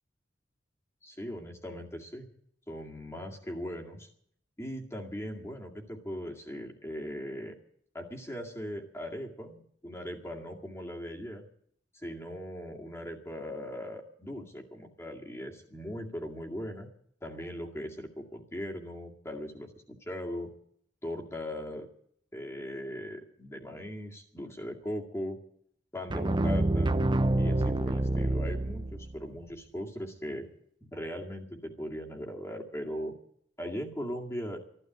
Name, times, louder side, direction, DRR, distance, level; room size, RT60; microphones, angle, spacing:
voice 1, 1.0-2.3 2.7-4.1 4.6-7.6 7.9-11.4 11.9-16.9 17.2-20.5 21.0-21.9 22.3-25.4 25.9-26.9 27.3-30.5 30.8-33.1 33.6-34.6, equal, 15° left, 0 dB, 2.1 m, -39 dB
sound 1, 26.1-29.2, right 2 dB, 25° right, 0.6 m, -27 dB
14.0 x 12.5 x 7.9 m, 0.65 s
head